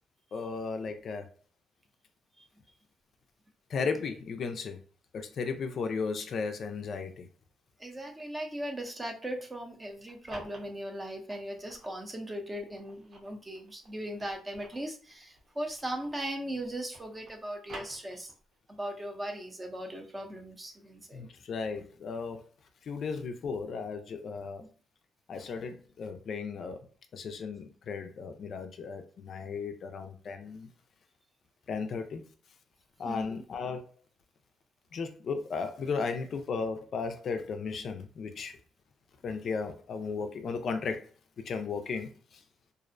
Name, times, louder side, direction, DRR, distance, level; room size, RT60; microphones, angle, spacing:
voice 1, 0.3-1.3 3.7-4.8 5.1-7.3 21.1-22.4 22.9-24.6 25.3-26.8 27.1-30.7 31.7-32.2 33.0-33.9 34.9-38.6 39.2-41.1 41.4-42.4, left 5 dB, 60° left, 7 dB, 0.3 m, -35 dB
voice 2, 7.8-18.3 18.7-21.2 33.0-33.4, right 1 dB, 20° right, 3 dB, 0.5 m, -38 dB
sound 1, 9.9-12.0 12.5-16.3 16.6-18.6, right 1 dB, 60° right, 0.9 m, -51 dB
2.5 x 2.0 x 2.4 m, 0.39 s
cardioid pair, 90°, 0 cm